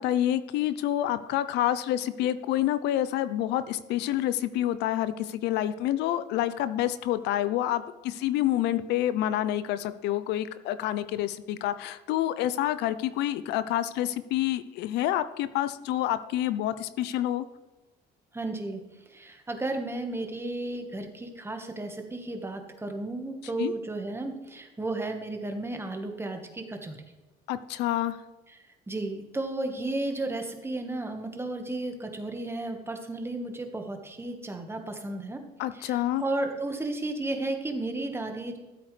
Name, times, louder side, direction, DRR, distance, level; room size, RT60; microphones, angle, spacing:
voice 1, 0.0-17.4 23.6-23.7 27.5-28.2 35.6-36.2, left 13 dB, 85° left, 14 dB, 0.6 m, -28 dB
voice 2, 18.3-18.8 19.1-27.0 28.9-35.4 35.7-38.6, right 2 dB, 15° right, 4 dB, 1.5 m, -33 dB
13.5 x 8.1 x 3.3 m, 1.1 s
cardioid pair, 110°, 17 cm